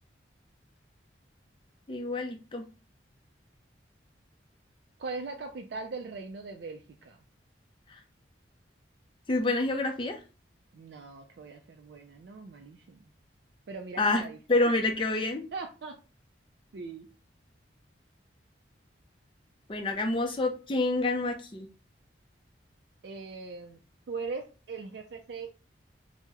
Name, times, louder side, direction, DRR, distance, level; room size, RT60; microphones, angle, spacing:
voice 1, 1.9-2.7 7.9-8.0 9.3-10.2 14.0-14.2 14.5-15.4 19.7-21.7, left 2 dB, 25° left, 4 dB, 0.4 m, -28 dB
voice 2, 5.0-7.2 10.7-13.0 13.7-14.4 15.5-16.0 16.7-17.1 23.0-23.8 24.1-25.5, right 4 dB, 65° right, 4 dB, 0.4 m, -40 dB
2.8 x 2.0 x 3.4 m, 0.33 s
head